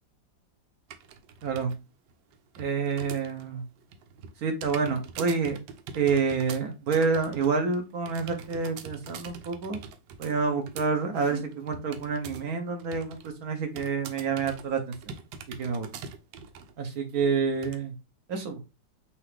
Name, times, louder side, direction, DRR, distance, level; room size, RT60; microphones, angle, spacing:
sound 1, 0.9-1.8 2.1-3.5 3.8-12.5 12.8-13.3 13.8-16.7 17.1-17.2 17.6-17.8, right 6 dB, 85° right, 1.4 m, -43 dB
voice 1, 1.4-1.7 2.6-3.6 4.4-5.6 5.9-9.8 10.2-14.9 15.6-15.9 16.8-17.9 18.3-18.6, right 5 dB, 60° right, 5 dB, 1.1 m, -28 dB
5.8 x 2.4 x 3.2 m, 0.28 s
omnidirectional pair, 2.0 m